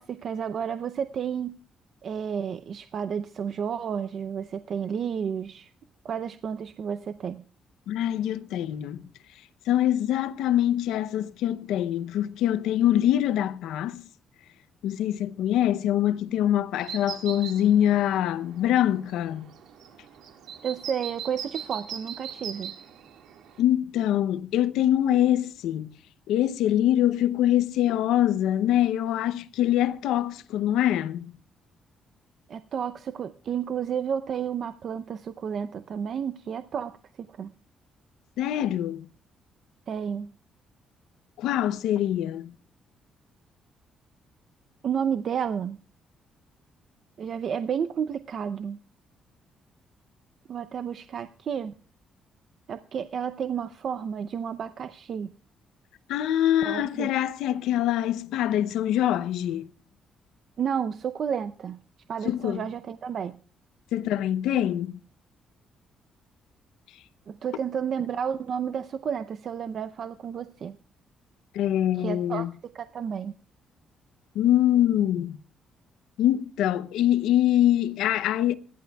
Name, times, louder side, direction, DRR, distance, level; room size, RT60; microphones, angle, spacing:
voice 1, 0.0-1.6 2.0-5.7 6.0-7.4 20.6-22.7 32.5-36.9 37.2-37.5 39.9-40.3 44.8-45.8 47.2-48.8 50.5-51.7 52.7-55.3 56.6-57.1 60.6-61.8 62.1-63.3 67.3-70.8 72.0-72.5 72.7-73.3, right 7 dB, 60° right, 0.6 m, -31 dB
voice 2, 7.9-9.0 9.7-14.0 14.8-19.5 23.6-25.9 26.3-31.3 38.4-39.0 41.4-42.5 56.1-59.7 62.2-62.6 63.9-65.0 71.5-72.5 74.3-75.4 76.2-78.6, left 12 dB, 90° left, 0.6 m, -24 dB
sound 1, 16.8-23.6, right 8 dB, 80° right, 1.8 m, -41 dB
26.5 x 11.0 x 2.3 m
cardioid pair, 90°, 0 cm